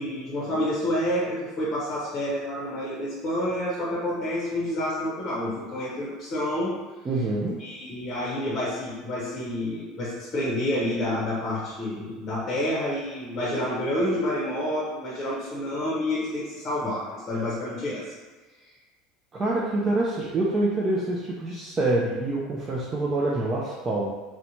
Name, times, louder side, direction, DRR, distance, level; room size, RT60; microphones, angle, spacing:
voice 1, 0.0-6.8 7.6-18.1, left 1 dB, 30° left, -6 dB, 0.7 m, -29 dB
voice 2, 7.0-7.6 19.3-24.1, right 2 dB, 25° right, -5 dB, 0.4 m, -26 dB
2.6 x 2.1 x 2.9 m, 1.3 s
supercardioid pair, 140°, 0 cm